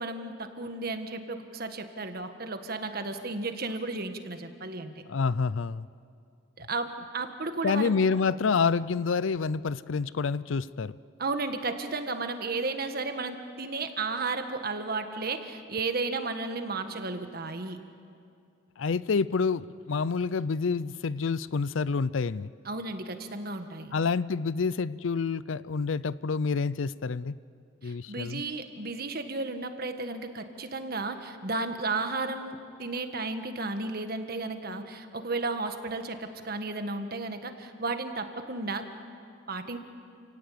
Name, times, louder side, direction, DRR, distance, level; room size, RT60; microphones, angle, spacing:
voice 1, 0.0-4.9 6.6-8.0 11.2-17.8 22.6-23.9 27.8-38.9 39.5-39.8, right 3 dB, 50° right, 7 dB, 1.6 m, -33 dB
voice 2, 5.1-5.9 7.6-10.9 18.8-22.5 23.9-27.4 27.8-28.4, left 5 dB, 85° left, 19 dB, 0.5 m, -28 dB
29.0 x 17.5 x 8.6 m, 2.5 s
head